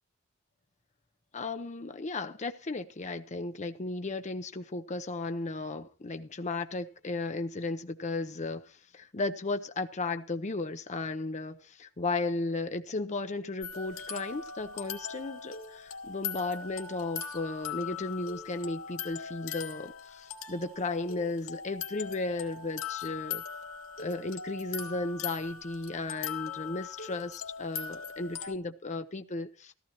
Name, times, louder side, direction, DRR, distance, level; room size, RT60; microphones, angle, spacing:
voice 1, 1.3-23.4 24.0-29.7, left 3 dB, 35° left, 0.7 m, -35 dB
sound 1, 13.6-28.5, left 7 dB, 90° left, 1.5 m, -40 dB
15.0 x 13.5 x 3.0 m
head